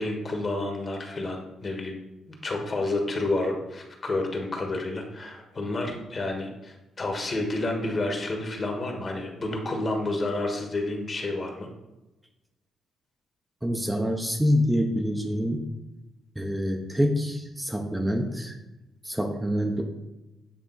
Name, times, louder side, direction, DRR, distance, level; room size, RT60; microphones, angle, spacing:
voice 1, 0.0-2.0 2.3-11.7, left 2 dB, 35° left, 2 dB, 1.5 m, -30 dB
voice 2, 13.6-15.7 16.4-18.6 19.0-19.8, equal, 5° right, 2 dB, 0.8 m, -26 dB
8.6 x 3.4 x 4.0 m, 1.0 s
cardioid pair, 90°, 0 cm